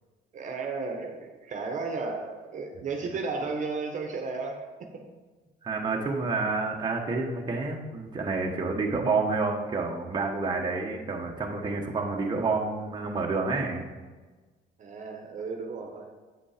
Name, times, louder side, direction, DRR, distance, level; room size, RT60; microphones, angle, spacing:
voice 1, 0.3-4.7 14.8-16.1, right 4 dB, 45° right, 3 dB, 1.1 m, -34 dB
voice 2, 5.6-13.8, right 3 dB, 25° right, 0 dB, 1.2 m, -29 dB
8.3 x 5.2 x 5.0 m, 1.3 s
cardioid pair, 110°, 17 cm